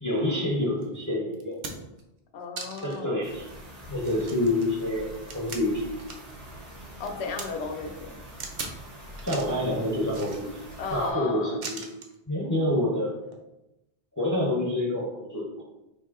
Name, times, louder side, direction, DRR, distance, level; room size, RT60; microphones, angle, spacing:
voice 1, 0.0-1.6 2.8-3.5 3.9-6.0 9.2-10.5 10.9-11.8 12.3-13.2 14.2-15.6, left 1 dB, 20° left, -3 dB, 0.6 m, -27 dB
sound 1, 0.8-0.9 1.3-2.0 2.6-3.0 3.5-3.6 4.0-6.4 6.7-7.5 8.4-8.8 9.1-9.6 10.1-10.8 11.6-12.1 13.2-13.4, right 4 dB, 50° right, 0.7 m, -40 dB
voice 2, 2.3-3.3 7.0-8.2 10.8-11.7, left 4 dB, 80° left, 4 dB, 0.9 m, -34 dB
sound 2, 3.2-11.1, equal, 80° right, 1.8 m, -45 dB
4.8 x 2.8 x 3.6 m, 0.92 s
omnidirectional pair, 1.1 m